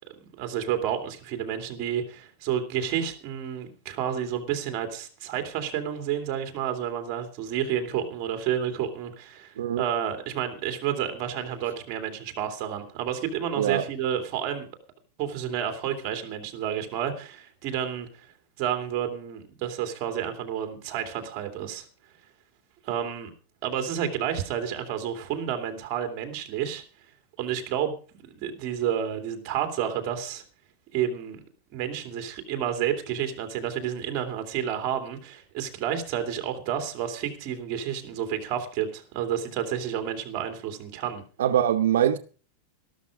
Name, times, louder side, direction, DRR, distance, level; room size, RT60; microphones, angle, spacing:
voice 1, 0.2-14.7 15.2-18.1 18.6-21.9 22.8-23.3 23.6-26.8 27.4-28.0 28.2-30.4 30.9-31.4 31.7-41.2, right 9 dB, 35° right, 2.7 m, -30 dB
voice 2, 13.6-13.9 41.4-42.2, right 10 dB, 85° right, 0.9 m, -23 dB
13.5 x 12.5 x 5.0 m
supercardioid pair, 170°, 0 cm